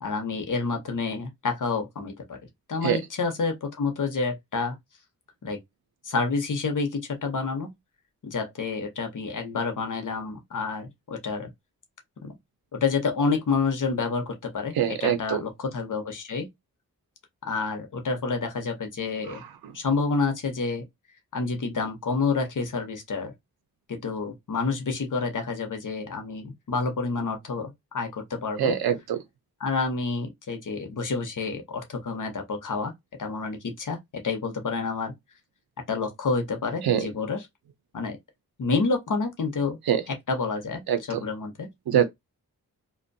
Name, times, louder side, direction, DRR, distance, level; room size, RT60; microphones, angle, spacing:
voice 1, 0.0-2.4 2.7-4.7 5.4-5.6 6.0-7.7 8.2-11.5 12.2-12.4 12.7-16.5 17.5-19.4 19.7-20.8 21.3-23.3 23.9-28.8 29.6-32.9 33.2-35.1 35.9-37.5 37.9-38.2 38.6-39.8 40.1-40.8 41.1-41.7, left 4 dB, 60° left, 0.7 m, -29 dB
voice 2, 14.8-15.4 28.6-29.2 36.8-37.1 39.9-40.0 40.9-41.2 41.9-42.1, right 9 dB, 90° right, 0.5 m, -23 dB
2.5 x 2.1 x 2.5 m
wide cardioid pair, 85°, 36 cm